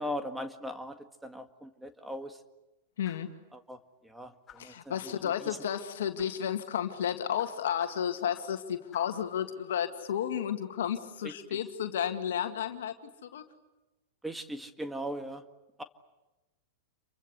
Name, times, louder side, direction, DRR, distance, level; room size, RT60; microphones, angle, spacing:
voice 1, 0.0-2.4 3.5-5.2 5.4-5.6 11.2-11.6 14.2-15.4 15.8-15.9, equal, 5° right, 8 dB, 1.9 m, -39 dB
voice 2, 3.0-3.3 4.6-12.9 13.2-13.5, left 9 dB, 70° left, 7 dB, 2.1 m, -32 dB
sound 1, 3.0-3.4 4.5-4.8 6.2-6.4 7.4-8.6 8.9-9.2, left 8 dB, 25° left, 7.9 m, -56 dB
29.0 x 24.5 x 8.3 m, 1.1 s
hypercardioid pair, 110°, 0 cm